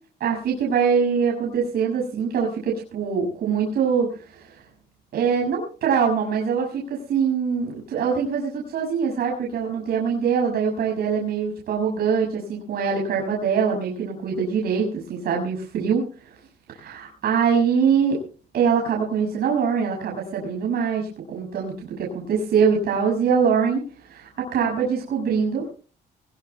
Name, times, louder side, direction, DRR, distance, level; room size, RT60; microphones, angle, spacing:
voice 1, 0.2-4.6 5.1-16.3 16.7-18.2 18.5-25.7, right 6 dB, 70° right, -1 dB, 6.6 m, -23 dB
23.0 x 21.0 x 2.2 m, 0.37 s
cardioid pair, 135°, 17 cm